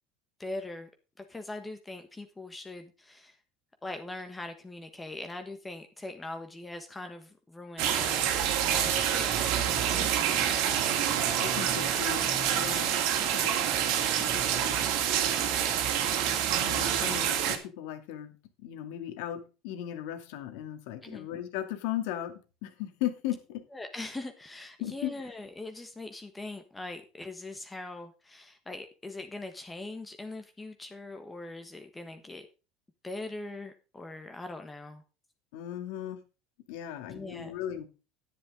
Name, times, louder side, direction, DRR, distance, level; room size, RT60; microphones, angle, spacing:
voice 1, 0.4-0.9 1.2-3.4 3.8-8.3 8.7-10.4 21.0-21.3 23.7-32.5 33.0-35.0 37.1-37.6, left 2 dB, 10° left, 6 dB, 1.3 m, -41 dB
sound 1, 7.8-17.6, right 9 dB, 65° right, 2.5 m, -27 dB
voice 2, 11.4-13.0 13.3-13.8 14.0-14.8 16.6-18.3 18.6-23.6 24.8-25.3 35.5-36.2 36.7-37.8, left 12 dB, 75° left, 8 dB, 2.4 m, -37 dB
10.5 x 10.5 x 3.7 m, 0.32 s
cardioid pair, 145°, 0 cm